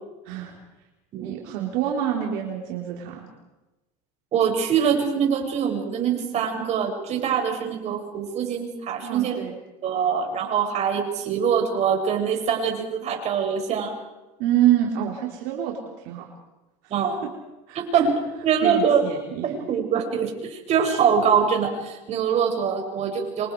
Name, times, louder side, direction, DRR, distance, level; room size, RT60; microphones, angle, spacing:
voice 1, 1.2-3.2 9.0-9.5 14.4-16.3 17.7-17.8 18.6-19.5, right 11 dB, 70° right, 0 dB, 3.9 m, -26 dB
voice 2, 4.3-9.4 9.8-13.9 16.9-17.2 17.7-19.0 19.4-23.5, right 7 dB, 45° right, 2 dB, 6.7 m, -24 dB
27.5 x 26.0 x 4.9 m, 1.0 s
supercardioid pair, 120°, 16 cm